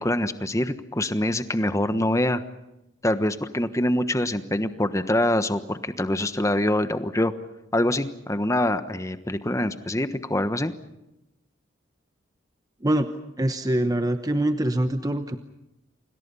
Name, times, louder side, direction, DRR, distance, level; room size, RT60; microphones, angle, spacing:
voice 1, 0.0-2.4 3.0-7.3 7.7-10.7, left 1 dB, 15° left, 11 dB, 1.2 m, -24 dB
voice 2, 13.4-15.4, right 1 dB, 20° right, 8 dB, 1.0 m, -24 dB
29.5 x 26.0 x 5.6 m, 0.93 s
head